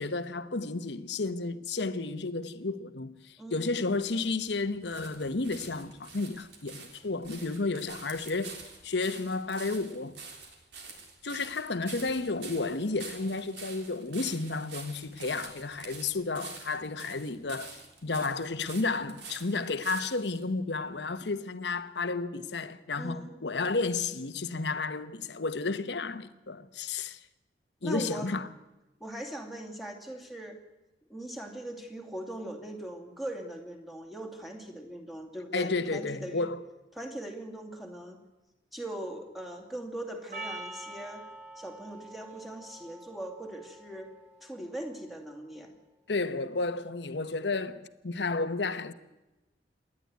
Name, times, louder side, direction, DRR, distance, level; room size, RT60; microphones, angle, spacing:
voice 1, 0.0-8.6 8.8-10.2 11.2-27.2 27.8-28.5 35.5-36.6 46.1-48.9, left 3 dB, 80° left, 1.0 m, -32 dB
sound 1, 3.9-20.4 21.1-21.2, right 4 dB, 75° right, 3.6 m, -47 dB
voice 2, 23.0-23.4 27.8-28.3 29.0-30.6 31.1-36.5 37.0-38.2 38.7-41.2 41.6-44.1 44.4-45.7, right 1 dB, ahead, 2.5 m, -40 dB
Percussion, 40.3-44.9, right 2 dB, 45° right, 2.7 m, -45 dB
27.5 x 11.0 x 9.4 m
head